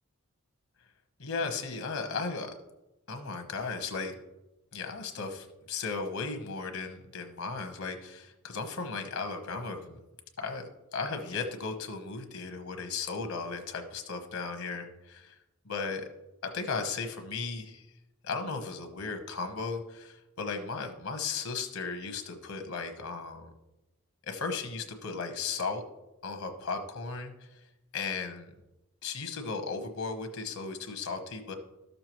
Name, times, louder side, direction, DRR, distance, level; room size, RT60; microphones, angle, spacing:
voice 1, 1.2-2.5 3.1-4.1 4.7-9.9 10.4-15.3 15.6-16.1 16.4-17.8 18.2-23.5 24.2-25.8 26.2-27.6 27.9-28.5 29.0-31.5, left 4 dB, 75° left, 5 dB, 1.0 m, -36 dB
13.0 x 6.7 x 3.0 m, 0.94 s
head